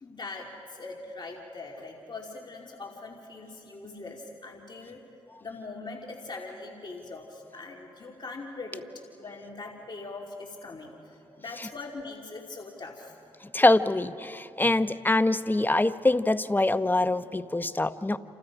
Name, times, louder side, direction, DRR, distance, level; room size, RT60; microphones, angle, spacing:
voice 1, 0.0-5.0 5.4-8.8 9.1-13.1 14.6-14.7, left 3 dB, 45° left, 0 dB, 2.7 m, -41 dB
voice 2, 13.5-18.2, left 2 dB, 15° left, 12 dB, 0.9 m, -24 dB
29.0 x 28.0 x 5.1 m, 2.9 s
cardioid pair, 55°, 11 cm